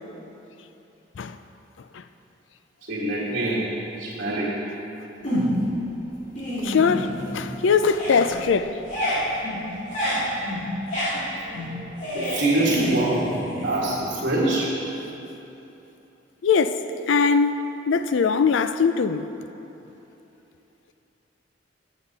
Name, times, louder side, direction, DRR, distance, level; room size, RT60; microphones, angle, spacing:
voice 1, 2.9-3.7 4.0-4.5 12.1-13.2 13.6-14.7, right 2 dB, 50° right, 1.6 m, -24 dB
sound 1, 5.2-5.8 6.2-7.5 7.8-14.3, equal, 40° left, 2.8 m, -28 dB
voice 2, 6.6-8.8 16.4-19.3, left 5 dB, 80° left, 0.4 m, -21 dB
16.5 x 7.0 x 4.1 m
head